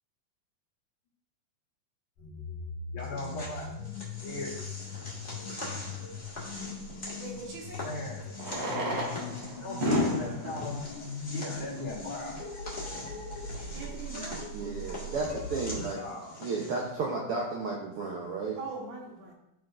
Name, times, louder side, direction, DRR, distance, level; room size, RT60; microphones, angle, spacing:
sound 1, 2.2-15.9, left 3 dB, 85° left, 3.6 m, -40 dB
voice 1, 2.9-3.7 4.2-4.5 7.8-8.3 9.6-10.8 11.3-12.4 16.0-16.4, left 2 dB, 65° left, -5 dB, 3.7 m, -38 dB
sound 2, 3.0-16.8, left 1 dB, 30° left, 1.5 m, -44 dB
Fireworks, 4.8-4.9 7.2-7.3 8.3-12.1 12.8-12.9 13.1-13.2 13.4-13.5 14.1-14.3, left 1 dB, 45° right, 1.4 m, -32 dB
voice 2, 7.2-7.9 9.2-9.3 13.7-14.4 18.6-19.3, right 3 dB, 60° right, -3 dB, 2.6 m, -41 dB
voice 3, 14.5-16.0 16.4-18.6, right 4 dB, 90° right, -2 dB, 1.2 m, -33 dB
14.0 x 4.7 x 2.5 m, 0.86 s
omnidirectional pair, 3.8 m